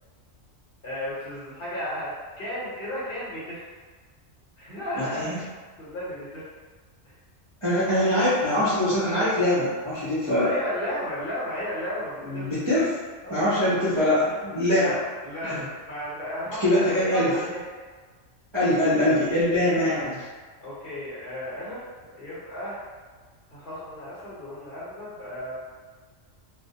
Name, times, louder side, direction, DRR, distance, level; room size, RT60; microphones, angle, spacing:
voice 1, 0.8-3.6 4.6-5.3 5.8-6.5 10.4-12.8 13.2-13.7 14.3-14.4 14.7-15.0 15.2-17.6 20.6-21.8 22.1-22.8 23.5-25.6, equal, 55° left, -9 dB, 0.9 m, -34 dB
voice 2, 5.0-5.4 7.6-10.5 12.2-12.9 13.3-14.9 15.4-15.6 16.6-17.3 18.5-20.2, left 1 dB, 35° right, -13 dB, 0.5 m, -23 dB
2.1 x 2.1 x 2.7 m, 1.5 s
omnidirectional pair, 1.3 m